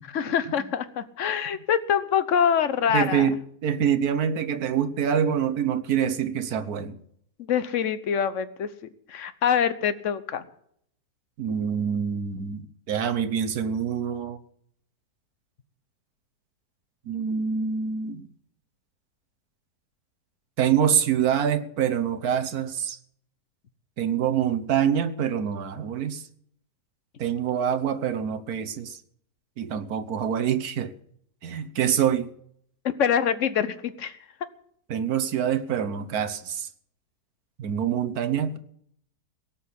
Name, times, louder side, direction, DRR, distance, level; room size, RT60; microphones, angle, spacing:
voice 1, 0.1-3.3 7.5-8.7 9.1-10.4 33.0-34.1, left 8 dB, 50° left, 1.2 m, -25 dB
voice 2, 2.9-7.0 11.4-14.4 17.1-18.3 20.6-23.0 24.0-26.2 27.2-29.0 29.6-30.9 31.4-32.3 34.9-36.7 37.6-38.6, right 8 dB, 65° right, 1.4 m, -25 dB
18.0 x 6.4 x 10.0 m
omnidirectional pair, 1.8 m